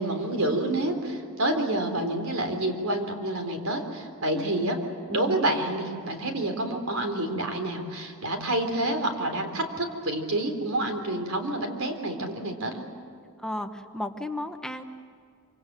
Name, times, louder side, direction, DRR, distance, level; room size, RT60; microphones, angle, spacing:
voice 1, 0.0-4.8 5.1-12.9, right 1 dB, 85° right, 5 dB, 3.9 m, -28 dB
voice 2, 13.4-14.8, left 1 dB, 5° left, 5 dB, 1.0 m, -33 dB
26.5 x 26.0 x 7.7 m, 2.3 s
head